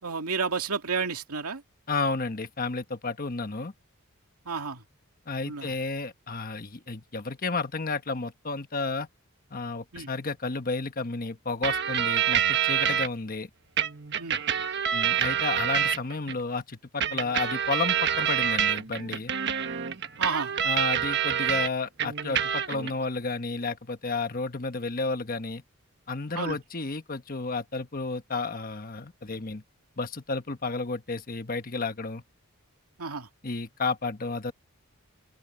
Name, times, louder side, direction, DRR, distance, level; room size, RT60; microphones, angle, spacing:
voice 1, 0.0-1.6 4.5-4.8 5.4-5.7 9.9-10.1 14.2-14.4 20.2-20.5 26.3-26.6 33.0-33.3, right 5 dB, 85° right, 2.2 m, -31 dB
voice 2, 1.9-3.7 5.3-9.1 9.5-13.5 14.9-19.3 20.6-25.6 26.1-29.6 30.0-32.2 33.4-34.5, left 3 dB, 40° left, 1.2 m, -32 dB
sound 1, 11.6-13.1 13.8-16.3 17.0-21.7 22.0-22.9, right 8 dB, 50° right, 1.3 m, -27 dB
open air
head